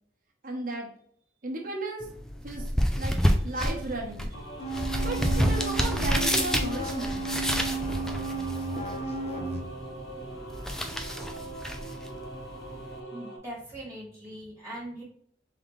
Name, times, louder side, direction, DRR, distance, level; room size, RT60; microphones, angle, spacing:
voice 1, 0.4-0.9 1.4-2.0 2.4-2.7 3.0-4.7 5.0-7.2, right 2 dB, 45° right, 0 dB, 0.9 m, -35 dB
sound 1, 2.0-13.0, equal, 5° left, 0.4 m, -30 dB
sound 2, 4.3-13.4, right 2 dB, 80° left, 1.3 m, -42 dB
sound 3, 4.6-9.6, right 3 dB, 35° left, 0.7 m, -33 dB
voice 2, 13.1-15.0, right 1 dB, 15° right, -6 dB, 1.5 m, -41 dB
3.8 x 3.4 x 3.1 m, 0.64 s
head